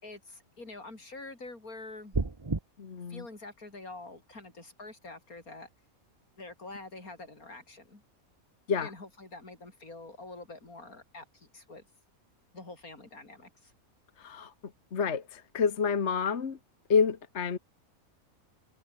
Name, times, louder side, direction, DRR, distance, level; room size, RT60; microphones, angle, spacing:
voice 1, 0.0-2.1 3.1-5.7 6.4-8.0 8.8-11.8 12.5-13.7, left 2 dB, 85° left, 5.4 m, -46 dB
sound 1, 2.1-2.6, right 3 dB, 20° right, 1.0 m, -29 dB
voice 2, 2.8-3.2 8.7-8.9 14.2-14.5 14.9-16.6 16.9-17.6, left 6 dB, 50° left, 1.6 m, -28 dB
omnidirectional pair, 1.5 m